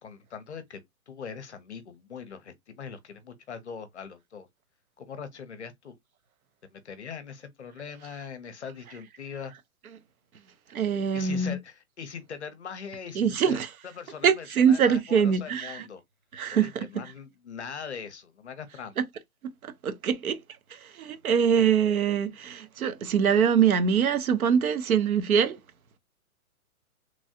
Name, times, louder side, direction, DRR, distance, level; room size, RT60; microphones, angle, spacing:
voice 1, 0.0-4.5 5.0-6.0 6.6-9.5 11.1-13.6 13.8-16.0 16.5-19.0 21.6-21.7, left 6 dB, 50° left, 0.6 m, -41 dB
voice 2, 10.7-11.6 13.2-13.7 14.2-15.9 16.3-16.8 19.8-20.4 20.7-25.6, right 7 dB, 70° right, 0.7 m, -23 dB
3.1 x 2.4 x 2.6 m
hypercardioid pair, 180°, 44 cm